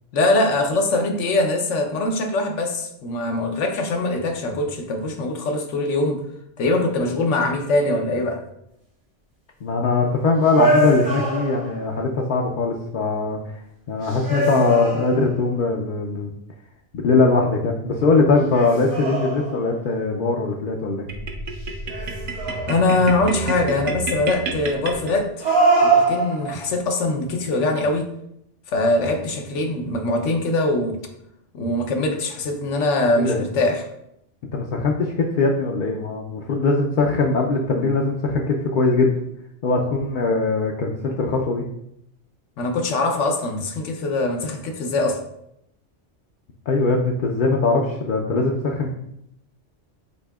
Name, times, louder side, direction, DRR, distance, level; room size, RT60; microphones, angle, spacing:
voice 1, 0.1-6.2 6.6-8.4 22.7-25.5 25.8-28.1 28.7-31.0 31.5-33.8 42.6-45.2, left 2 dB, 85° left, 4 dB, 1.1 m, -22 dB
voice 2, 9.6-13.5 13.9-16.3 16.9-21.1 33.0-33.4 34.5-39.1 39.6-41.6 46.7-48.9, left 3 dB, 55° left, 0 dB, 0.6 m, -21 dB
sound 1, 10.5-11.9 14.0-15.5 18.5-19.8 21.9-23.0 25.4-26.8, right 3 dB, 90° right, 2.3 m, -22 dB
sound 2, 21.1-25.6, right 2 dB, 55° right, 0.7 m, -30 dB
8.1 x 2.7 x 2.3 m, 0.77 s
omnidirectional pair, 1.2 m